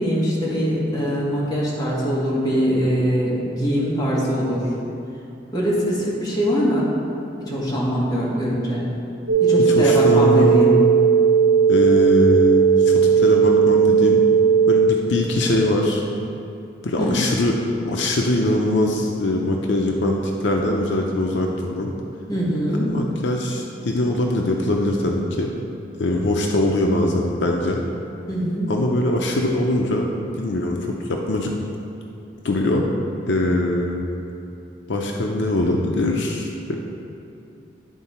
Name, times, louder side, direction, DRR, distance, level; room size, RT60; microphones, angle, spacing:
voice 1, 0.0-4.7 5.5-6.9 7.5-8.9 9.4-10.7 17.0-17.2 22.3-22.9 28.3-28.7, equal, 20° left, -6 dB, 1.6 m, -22 dB
sound 1, 9.3-14.9, right 7 dB, 85° right, 0.9 m, -16 dB
voice 2, 9.7-10.9 11.7-14.2 14.7-16.0 16.8-17.6 17.8-21.9 22.7-25.5 26.0-27.8 28.7-30.1 30.4-31.5 32.4-32.9 33.3-34.1 34.9-36.7, left 1 dB, 75° left, 0 dB, 0.6 m, -22 dB
10.5 x 3.9 x 4.3 m, 2.7 s
head